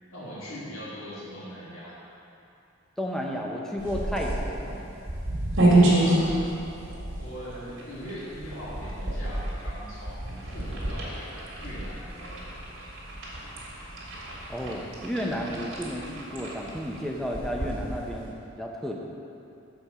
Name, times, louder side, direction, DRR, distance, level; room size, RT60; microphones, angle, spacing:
voice 1, 0.1-2.0 4.5-4.8 5.8-6.4 7.2-12.5 12.8-12.9, equal, 80° left, -9 dB, 1.9 m, -41 dB
voice 2, 3.0-4.6 14.5-19.0, equal, ahead, -1 dB, 0.6 m, -32 dB
sound 1, 3.8-18.3, right 1 dB, 75° right, 2.0 m, -29 dB
7.1 x 4.4 x 6.7 m, 2.7 s
head